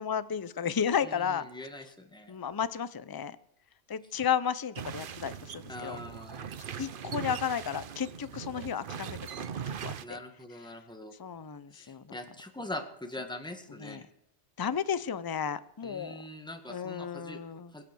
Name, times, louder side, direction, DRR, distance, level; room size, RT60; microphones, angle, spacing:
voice 1, 0.0-1.5 2.3-3.4 3.9-6.0 6.8-9.2 9.7-10.2 11.2-12.2 13.8-14.0 14.6-16.2 16.7-17.7, left 7 dB, 30° left, 15 dB, 0.4 m, -33 dB
voice 2, 1.0-2.4 5.7-6.5 10.0-11.1 11.7-14.1 15.8-17.8, left 1 dB, 5° left, 5 dB, 1.7 m, -43 dB
sound 1, 4.8-10.0, right 8 dB, 55° right, 0.8 m, -40 dB
23.0 x 8.2 x 6.2 m, 0.78 s
omnidirectional pair, 1.2 m